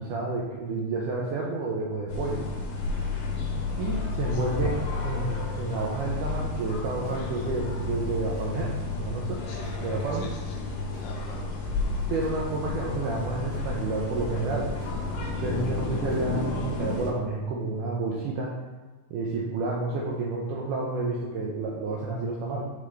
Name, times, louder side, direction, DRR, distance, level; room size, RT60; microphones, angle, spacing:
voice 1, 0.0-2.4 3.4-3.5 3.8-8.7 9.0-9.4 9.8-10.3 12.1-14.7 15.4-18.5 19.1-22.6, right 3 dB, 85° right, -3 dB, 1.8 m, -30 dB
sound 1, 2.1-17.1, left 3 dB, 70° left, 1.5 m, -31 dB
sound 2, 6.4-7.2 7.6-8.7 9.0-9.7 10.2-12.3 12.8-13.8 14.2-14.9 15.3-16.8, right 1 dB, 65° right, 3.0 m, -45 dB
voice 2, 7.2-7.6 9.5-11.7, left 5 dB, 90° left, 0 dB, 1.9 m, -46 dB
6.7 x 5.3 x 3.3 m, 1.2 s
omnidirectional pair, 4.5 m